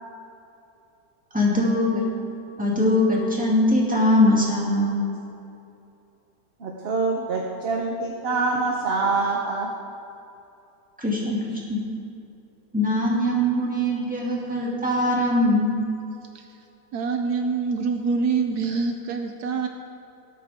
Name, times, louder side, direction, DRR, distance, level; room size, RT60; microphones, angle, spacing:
voice 1, 1.3-2.1 2.6-5.0 11.0-11.8 12.7-15.8, left 1 dB, 5° right, -5 dB, 2.2 m, -21 dB
voice 2, 6.6-9.7, right 3 dB, 45° right, 0 dB, 1.0 m, -25 dB
voice 3, 16.9-19.7, right 5 dB, 75° right, 5 dB, 1.2 m, -25 dB
18.5 x 8.4 x 3.5 m, 2.8 s
omnidirectional pair, 1.8 m